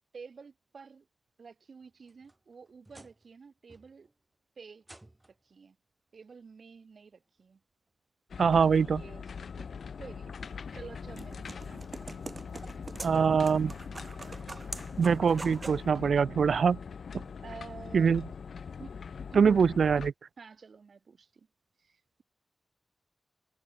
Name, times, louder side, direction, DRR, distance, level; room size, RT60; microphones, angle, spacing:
voice 1, 0.1-1.1 1.4-4.1 4.6-4.8 5.4-5.8 6.1-7.6 8.5-9.7 10.0-11.7 17.4-18.2 18.8-18.9 19.3-19.6 20.4-21.5 21.8-22.2, right 5 dB, 60° right, 2.7 m, -49 dB
sound 1, 1.8-3.4 3.7-4.2 4.8-5.5 6.7-6.8 7.4-7.5 9.1-9.2, right 1 dB, 15° right, 3.5 m, -57 dB
sound 2, 8.3-20.1, left 6 dB, 80° left, 1.4 m, -42 dB
voice 2, 8.4-9.0 13.0-13.7 15.0-16.8 17.9-18.2 19.4-20.1, right 6 dB, 85° right, 0.5 m, -23 dB
sound 3, 10.6-15.9, right 3 dB, 30° right, 4.0 m, -44 dB
wide cardioid pair, 145°, 0 cm